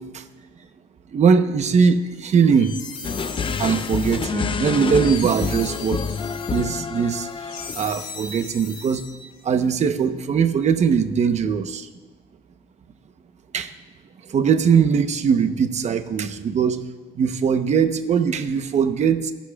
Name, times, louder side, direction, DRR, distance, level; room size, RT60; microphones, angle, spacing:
voice 1, 1.1-2.7 3.6-6.0 6.5-9.0 9.4-11.9 13.5-13.7 14.3-16.8 17.1-19.3, right 6 dB, 40° right, 8 dB, 1.0 m, -20 dB
sound 1, 2.3-9.6, left 4 dB, 55° left, 3.6 m, -39 dB
sound 2, 3.0-8.0, left 6 dB, 30° left, 0.6 m, -28 dB
27.5 x 11.5 x 2.4 m, 1.2 s
cardioid pair, 110°, 17 cm